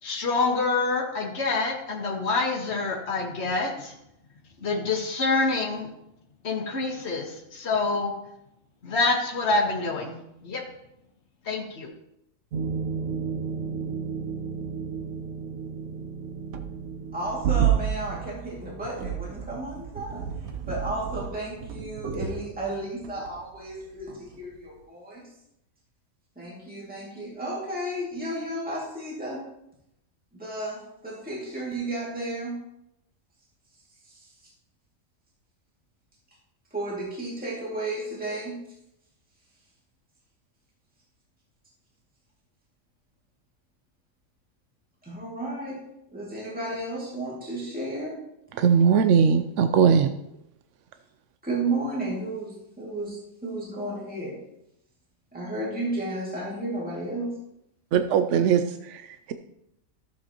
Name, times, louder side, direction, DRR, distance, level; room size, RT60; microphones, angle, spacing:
voice 1, 0.0-3.9 4.6-5.9 6.4-8.1 8.8-10.1 10.4-10.6 11.4-11.9, left 3 dB, 50° left, -1 dB, 1.6 m, -26 dB
sound 1, 12.5-24.0 24.3-24.6, right 8 dB, 85° right, 1.2 m, -31 dB
voice 2, 17.1-20.3 20.7-25.3 26.4-29.4 30.3-32.6 36.7-38.6 45.0-45.8 46.1-48.2 51.4-54.4 55.3-57.3, right 1 dB, 5° right, -5 dB, 2.2 m, -33 dB
voice 3, 48.6-50.1 57.9-59.3, right 6 dB, 70° right, 8 dB, 0.8 m, -20 dB
14.0 x 7.5 x 3.0 m, 0.81 s
omnidirectional pair, 1.4 m